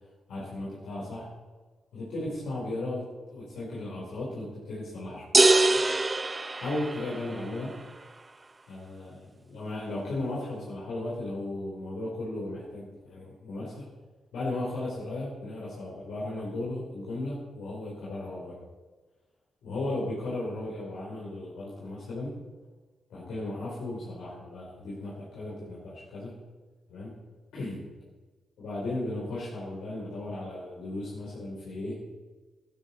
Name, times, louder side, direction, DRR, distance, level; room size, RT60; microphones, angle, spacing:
voice 1, 0.3-1.3 1.9-5.2 6.6-7.8 8.7-13.9 14.3-18.6 19.6-22.3 23.1-26.4 26.9-27.2 27.5-27.8 28.6-32.0, left 2 dB, 85° left, -6 dB, 3.3 m, -35 dB
sound 1, 5.3-7.4, right 2 dB, 30° right, 0.6 m, -23 dB
12.0 x 12.0 x 4.1 m, 1.3 s
supercardioid pair, 55°, 0 cm